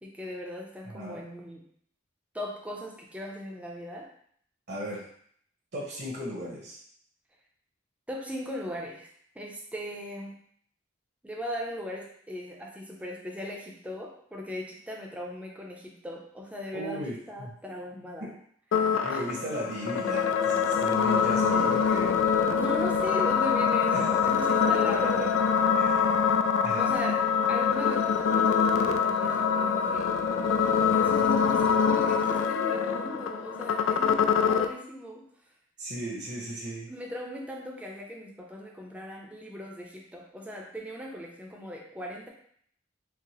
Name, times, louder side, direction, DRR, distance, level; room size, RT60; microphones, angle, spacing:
voice 1, 0.0-1.6 2.3-4.1 8.1-10.3 11.2-18.3 19.1-19.2 22.5-25.2 26.8-30.1 30.9-35.3 36.9-42.3, left 1 dB, 5° right, -1 dB, 0.6 m, -38 dB
voice 2, 4.7-5.0 5.7-6.8 16.7-17.5 18.2-18.3 19.0-22.2 23.9-24.0 24.9-25.3 25.8-26.0 26.6-26.9 35.8-36.9, right 1 dB, 60° right, -4 dB, 1.0 m, -36 dB
sound 1, 18.7-34.7, left 6 dB, 80° left, 0.3 m, -24 dB
4.6 x 2.1 x 3.0 m, 0.62 s
head